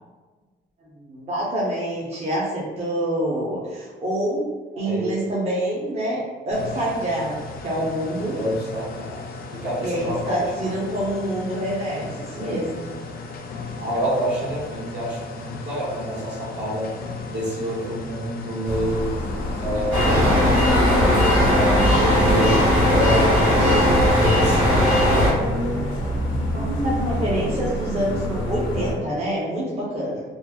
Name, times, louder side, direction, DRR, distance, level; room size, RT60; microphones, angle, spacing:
voice 1, 0.8-4.4 4.8-8.4 9.8-12.9 26.3-30.2, right 1 dB, 30° right, -7 dB, 0.7 m, -26 dB
voice 2, 4.8-5.2 8.4-10.7 13.8-16.9 17.3-19.1 19.6-23.9 24.2-25.3, equal, 60° right, -6 dB, 1.1 m, -27 dB
sound 1, 6.5-24.0, left 4 dB, 50° left, 0.4 m, -36 dB
sound 2, 18.6-28.9, equal, 80° left, 0.7 m, -27 dB
sound 3, 19.9-25.3, left 1 dB, 80° right, 1.4 m, -18 dB
3.0 x 2.0 x 2.3 m, 1.3 s
cardioid pair, 90°, 20 cm